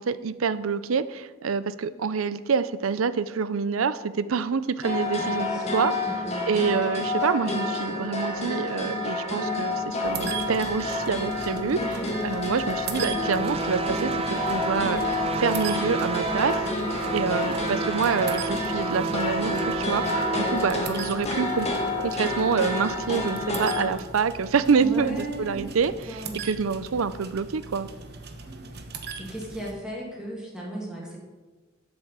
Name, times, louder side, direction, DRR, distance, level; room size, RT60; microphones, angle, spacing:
voice 1, 0.0-5.9 6.5-11.8 12.2-16.6 17.1-21.7 22.0-27.9, right 5 dB, 80° right, 15 dB, 0.5 m, -27 dB
sound 1, 4.8-23.9, left 2 dB, 30° left, 1.6 m, -29 dB
voice 2, 5.1-5.7 6.0-6.5 11.7-12.1 20.4-20.7 24.8-25.7 26.1-26.4 28.4-28.7 29.2-31.2, right 1 dB, 5° right, -4 dB, 2.5 m, -36 dB
sound 2, 10.0-29.7, right 5 dB, 55° right, 1.0 m, -40 dB
sound 3, 13.1-20.5, right 4 dB, 30° right, 0.5 m, -30 dB
8.0 x 7.9 x 7.3 m, 1.3 s
head